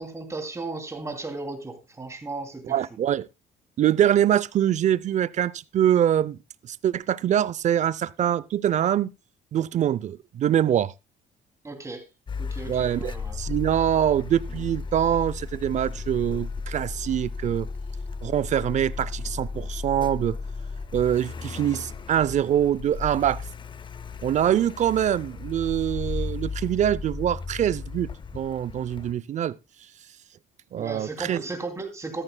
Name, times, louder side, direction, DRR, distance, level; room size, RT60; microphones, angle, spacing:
voice 1, 0.0-2.7 11.6-12.0 12.4-13.4 30.8-32.2, right 3 dB, 15° right, 2.7 m, -35 dB
voice 2, 2.7-3.3 3.8-6.4 6.6-9.1 9.5-10.9 12.7-17.7 18.2-20.4 20.9-23.4 24.2-29.6 30.7-31.4, right 10 dB, 45° right, 0.5 m, -24 dB
Car, 12.3-29.1, left 4 dB, 30° left, 0.6 m, -35 dB
14.0 x 13.5 x 2.2 m
cardioid pair, 110°, 17 cm